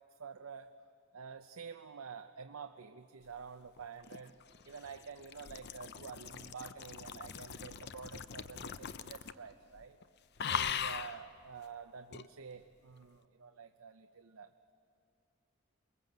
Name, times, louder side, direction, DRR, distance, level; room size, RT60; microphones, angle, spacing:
voice 1, 0.2-0.7 1.1-4.4 4.6-10.0 10.4-14.7, right 6 dB, 80° right, 7 dB, 0.7 m, -49 dB
sound 1, 3.8-9.5 9.8-10.0 10.4-11.2 12.1-12.3, left 8 dB, 50° left, 0.6 m, -40 dB
28.0 x 20.5 x 8.0 m, 2.5 s
head